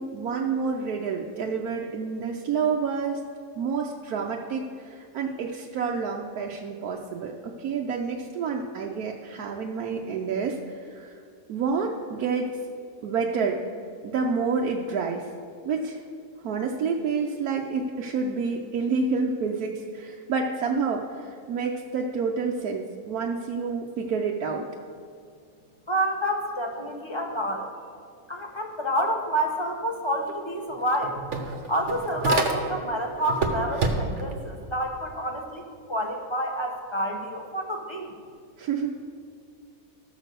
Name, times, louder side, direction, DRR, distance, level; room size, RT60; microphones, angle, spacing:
voice 1, 0.0-3.2 3.6-11.2 11.5-12.5 13.0-13.6 14.0-15.3 15.6-16.0 16.4-24.7 38.6-39.0, right 5 dB, 70° right, 0 dB, 1.2 m, -28 dB
voice 2, 25.9-27.7 28.3-31.2 31.7-35.6 35.9-38.1, equal, 25° left, 1 dB, 0.7 m, -28 dB
sound 1, 30.3-30.4 30.7-32.9 33.3-34.3, right 4 dB, 55° right, 1.2 m, -28 dB
13.0 x 6.2 x 6.7 m, 2.3 s
omnidirectional pair, 1.7 m